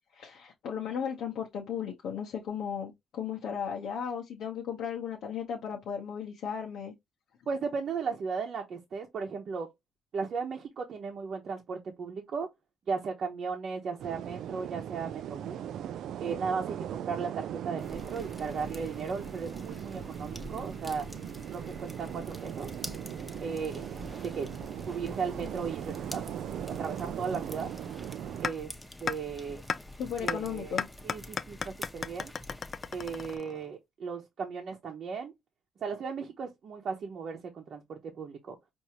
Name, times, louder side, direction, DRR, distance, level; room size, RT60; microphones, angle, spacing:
voice 1, 0.1-6.9 30.0-30.9, left 7 dB, 75° left, 0.9 m, -35 dB
voice 2, 7.5-9.7 10.1-12.5 12.9-15.7 16.2-21.0 21.5-22.7 23.4-23.8 24.2-24.5 24.9-26.2 26.8-27.7 28.4-28.7 29.0-29.6 30.2-32.3 32.9-35.3 35.8-38.6, right 5 dB, 60° right, 0.8 m, -36 dB
sound 1, 14.0-28.5, right 10 dB, 75° right, 0.3 m, -39 dB
sound 2, 17.8-33.4, left 1 dB, 10° left, 0.8 m, -46 dB
sound 3, 28.4-28.5 29.1-29.2 29.7-29.8 30.3-30.4 30.8-33.7, left 6 dB, 45° left, 0.3 m, -33 dB
4.7 x 2.7 x 2.8 m
cardioid pair, 90°, 0 cm